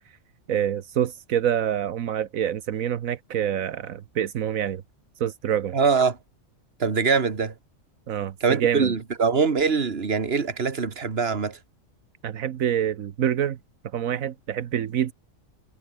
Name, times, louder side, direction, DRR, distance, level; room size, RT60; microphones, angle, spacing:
voice 1, 0.5-4.8 5.2-5.7 8.1-8.9 12.2-13.6 13.9-15.1, right 10 dB, 80° right, 1.4 m, -26 dB
voice 2, 5.7-6.2 6.8-7.5 8.4-11.6, right 5 dB, 50° right, 2.0 m, -23 dB
omnidirectional pair, 1.4 m